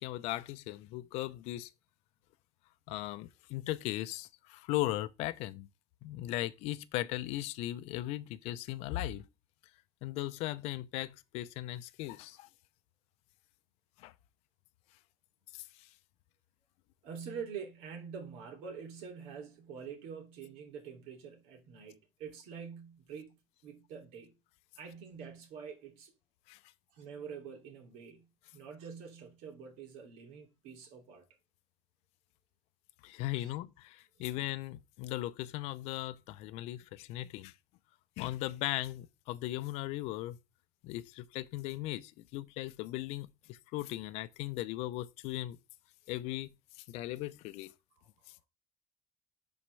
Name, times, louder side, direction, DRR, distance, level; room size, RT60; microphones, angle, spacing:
voice 1, 0.0-1.7 2.9-5.7 6.0-9.2 10.0-12.5 14.0-14.1 15.5-15.9 26.5-26.6 33.0-37.5 38.2-40.4 40.8-45.6 46.1-46.5 46.9-47.7, left 16 dB, 80° left, 0.6 m, -38 dB
voice 2, 17.0-23.3 23.6-24.3 24.8-26.1 26.9-28.2 28.5-31.3 33.3-33.5 34.2-34.3 48.0-48.1, right 6 dB, 85° right, 2.7 m, -46 dB
11.5 x 4.3 x 3.3 m
cardioid pair, 165°, 11 cm